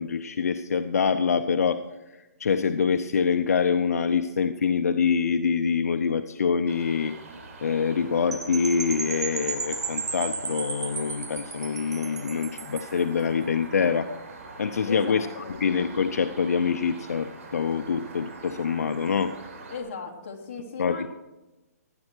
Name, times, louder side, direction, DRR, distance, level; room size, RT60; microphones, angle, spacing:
voice 1, 0.0-1.8 2.1-7.2 7.6-14.1 14.6-19.3 20.8-21.1, left 6 dB, 70° left, 9 dB, 0.7 m, -25 dB
sound 1, 6.7-19.8, right 3 dB, 55° right, 4.1 m, -44 dB
Percussion / Wind chime, 8.3-13.0, right 4 dB, 90° right, 2.2 m, -34 dB
voice 2, 14.9-15.5 19.7-21.1, left 5 dB, 40° left, 0 dB, 2.8 m, -37 dB
16.5 x 10.5 x 4.6 m, 1.1 s
hypercardioid pair, 165°, 9 cm